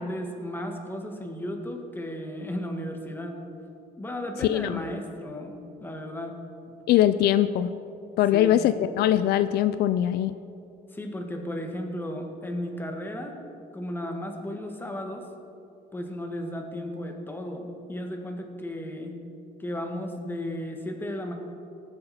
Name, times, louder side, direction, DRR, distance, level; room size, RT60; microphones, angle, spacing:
voice 1, 0.0-3.4 4.0-6.4 6.7-6.8 8.3-8.6 10.9-13.4 13.7-15.3 15.9-19.1 19.6-21.3, left 1 dB, 10° left, 3 dB, 1.7 m, -34 dB
voice 2, 4.4-4.8 6.9-7.7 8.2-10.3, left 12 dB, 70° left, 12 dB, 0.4 m, -22 dB
19.0 x 7.9 x 4.3 m, 2.7 s
cardioid pair, 110°, 17 cm